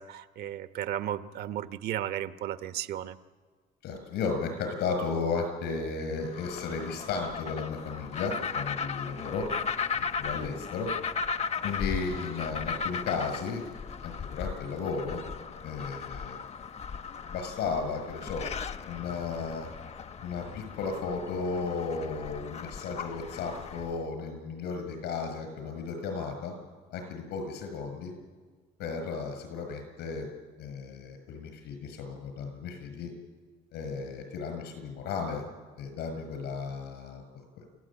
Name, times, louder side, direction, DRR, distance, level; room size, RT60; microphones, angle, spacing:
voice 1, 0.0-3.2, right 11 dB, 70° right, 10 dB, 1.1 m, -34 dB
voice 2, 3.8-9.5 10.0-10.9 11.6-13.6 14.0-15.2 15.6-16.3 17.3-18.4 18.9-19.7 20.2-26.5 26.9-28.1 28.8-30.3 30.6-33.1 33.7-35.4 35.8-37.6, left 4 dB, 80° left, 6 dB, 6.7 m, -34 dB
sound 1, 6.2-24.0, left 5 dB, 40° left, 0.9 m, -37 dB
29.0 x 15.0 x 8.9 m, 1.4 s
cardioid pair, 110°, 17 cm